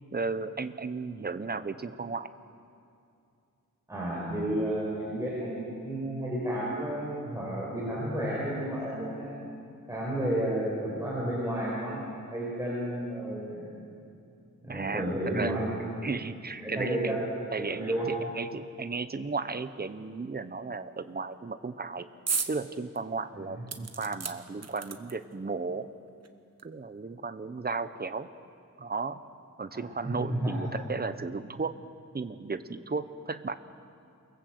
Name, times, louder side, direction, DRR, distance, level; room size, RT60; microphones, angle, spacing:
voice 1, 0.1-2.3 14.7-15.1 15.3-15.6 16.0-17.2 17.5-17.9 18.3-22.1 22.5-25.9 26.6-28.3 28.8-29.2 29.6-31.8 32.1-33.5, right 4 dB, 30° right, 11 dB, 0.9 m, -34 dB
voice 2, 3.9-9.3 9.9-12.0 12.3-13.8 14.6-15.7 16.6-17.2 17.6-18.1 23.3-23.6 29.7-30.7, right 1 dB, 10° right, -7 dB, 6.1 m, -32 dB
sound 1, 22.3-22.6 23.0-23.1 23.7-25.3 26.2-26.3 26.6-26.7, right 5 dB, 50° right, 1.3 m, -34 dB
28.0 x 19.5 x 7.9 m, 2.5 s
wide cardioid pair, 125°, 32 cm